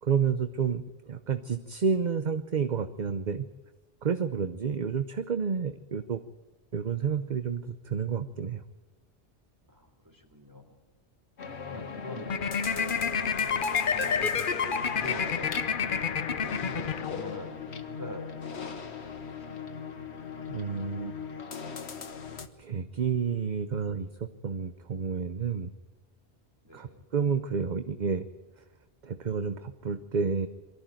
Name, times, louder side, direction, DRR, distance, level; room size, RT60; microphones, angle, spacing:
voice 1, 0.0-3.4 4.0-6.2 6.7-8.6 20.5-21.2 22.6-25.7 26.7-28.3 29.0-30.5, right 6 dB, 45° right, 11 dB, 0.8 m, -30 dB
voice 2, 9.7-10.8 11.5-15.9 16.4-19.7 26.6-27.0, left 1 dB, 15° right, 3 dB, 3.6 m, -45 dB
sound 1, 11.4-22.5, left 5 dB, 85° left, 1.5 m, -39 dB
sound 2, 12.3-17.5, left 6 dB, 55° left, 1.0 m, -29 dB
23.0 x 14.0 x 9.0 m, 1.2 s
omnidirectional pair, 1.1 m